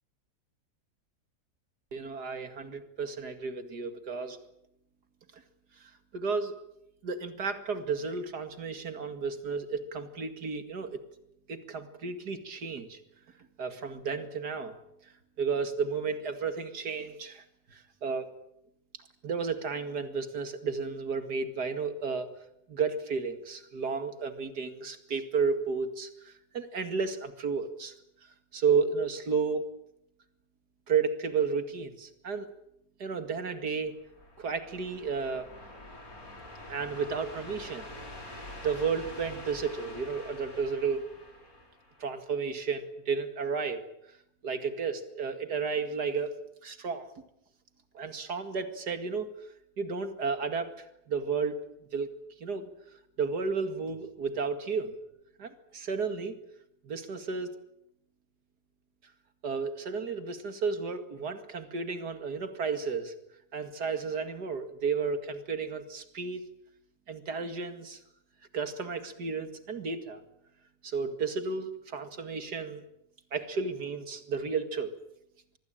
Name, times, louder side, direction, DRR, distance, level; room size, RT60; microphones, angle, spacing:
voice 1, 1.9-4.4 6.1-6.6 7.0-11.0 11.5-13.0 13.6-14.8 15.4-17.4 17.7-18.3 19.2-22.3 22.7-27.9 28.5-29.6 30.9-32.5 33.0-33.9 34.4-35.5 36.7-37.9 38.3-41.1 42.0-43.8 44.4-46.3 46.6-47.1 47.9-49.3 49.8-51.6 51.9-52.1 52.4-52.7 53.2-55.0 55.4-56.4 56.8-57.5 59.4-63.1 63.5-66.4 67.1-68.0 68.5-70.2 70.8-72.8 73.3-74.9, right 5 dB, 85° right, 9 dB, 2.7 m, -32 dB
sound 1, 33.8-42.3, left 1 dB, 65° left, 4.9 m, -46 dB
25.5 x 20.5 x 8.9 m, 0.79 s
omnidirectional pair, 1.7 m